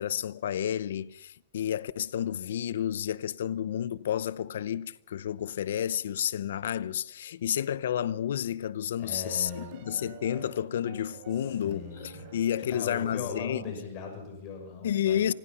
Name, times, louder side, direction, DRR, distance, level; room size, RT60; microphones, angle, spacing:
voice 1, 0.0-13.6 14.8-15.3, left 10 dB, 75° left, 0.7 m, -31 dB
voice 2, 9.0-9.7 11.5-12.2 12.7-15.3, left 5 dB, 40° left, 6.5 m, -39 dB
sound 1, 9.2-13.6, right 6 dB, 45° right, 6.0 m, -50 dB
25.5 x 18.0 x 5.7 m
hypercardioid pair, 135°, 0 cm